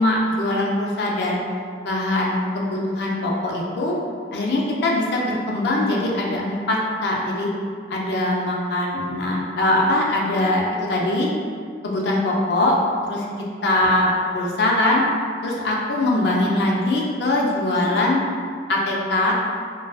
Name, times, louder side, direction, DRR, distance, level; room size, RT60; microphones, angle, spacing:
voice 1, 0.0-1.4 1.8-4.0 4.3-7.5 7.9-11.3 11.8-12.8 13.0-13.2 13.6-15.0 15.4-18.2 18.7-19.3, left 1 dB, 70° left, -2 dB, 0.4 m, -22 dB
2.3 x 2.3 x 2.3 m, 2.1 s
head